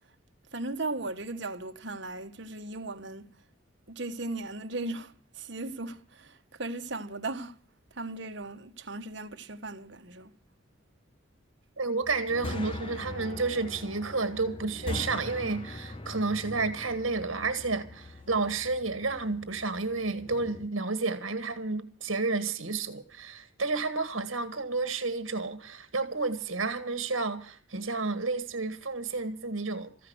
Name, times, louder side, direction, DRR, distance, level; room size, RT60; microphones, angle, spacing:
voice 1, 0.5-3.3 3.9-7.6 7.9-10.3, right 2 dB, 60° right, 1.4 m, -37 dB
voice 2, 11.8-29.9, right 3 dB, 75° right, 1.6 m, -31 dB
sound 1, 12.0-20.7, left 2 dB, 25° left, 0.9 m, -41 dB
14.5 x 11.0 x 7.9 m
head